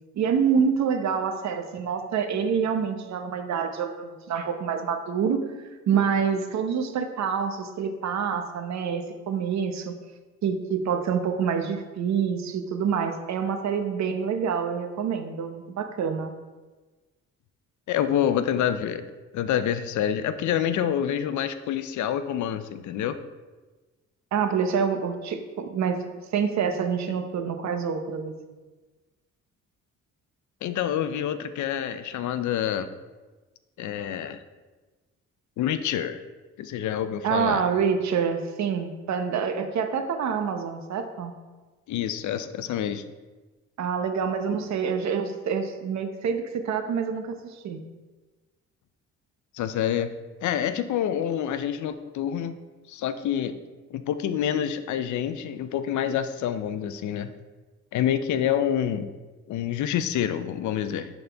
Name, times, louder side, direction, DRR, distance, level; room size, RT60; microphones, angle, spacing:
voice 1, 0.1-5.4 5.9-9.9 10.4-16.3 24.3-28.3 37.2-41.3 43.8-47.8, right 6 dB, 65° right, 7 dB, 0.9 m, -27 dB
voice 2, 17.9-19.0 19.3-23.2 30.6-32.9 33.8-34.4 35.6-36.2 36.6-37.6 41.9-43.0 49.5-50.1 50.4-52.6 52.9-53.6 53.9-57.3 57.9-59.1 59.5-61.1, left 10 dB, 75° left, 11 dB, 0.6 m, -27 dB
11.0 x 4.1 x 3.4 m, 1.3 s
cardioid pair, 90°, 30 cm